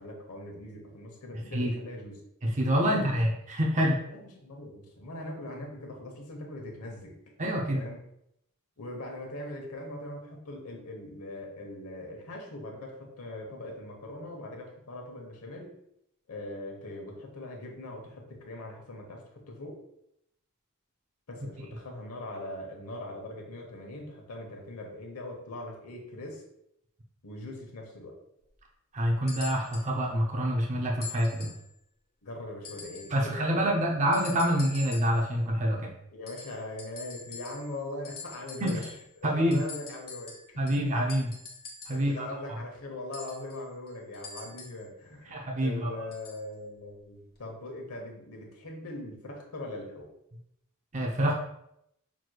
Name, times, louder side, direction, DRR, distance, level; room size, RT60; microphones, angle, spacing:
voice 1, 0.0-2.2 2.8-3.1 4.1-7.1 7.7-8.0 8.8-15.7 16.3-19.8 21.3-26.4 27.2-28.2 32.2-33.7 36.1-38.8 39.2-40.8 41.9-50.1, left 1 dB, 85° left, 1 dB, 1.0 m, -41 dB
voice 2, 2.4-4.0 7.4-7.9 28.9-31.5 33.1-35.9 38.6-38.8 39.2-39.6 40.6-41.3 41.9-42.3 45.3-45.9 50.9-51.4, equal, 35° right, 0 dB, 0.6 m, -26 dB
sound 1, 29.3-29.9 31.0-31.7 32.6-33.2 34.1-35.2 36.3-37.8 38.0-39.1 39.5-42.1 43.1-44.9 46.1-46.4 47.4-47.5, left 4 dB, 45° left, 1.0 m, -45 dB
6.0 x 3.1 x 2.3 m, 0.77 s
head